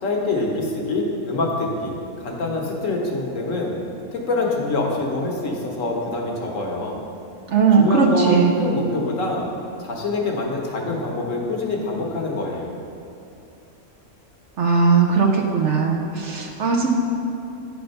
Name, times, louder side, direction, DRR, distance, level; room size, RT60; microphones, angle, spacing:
voice 1, 0.0-3.8 4.1-7.0 7.7-9.5 9.8-12.7, left 2 dB, 65° left, 0 dB, 1.4 m, -25 dB
voice 2, 7.5-8.6 14.6-16.9, right 5 dB, 60° right, 0 dB, 0.9 m, -18 dB
9.9 x 4.3 x 5.4 m, 2.7 s
omnidirectional pair, 1.5 m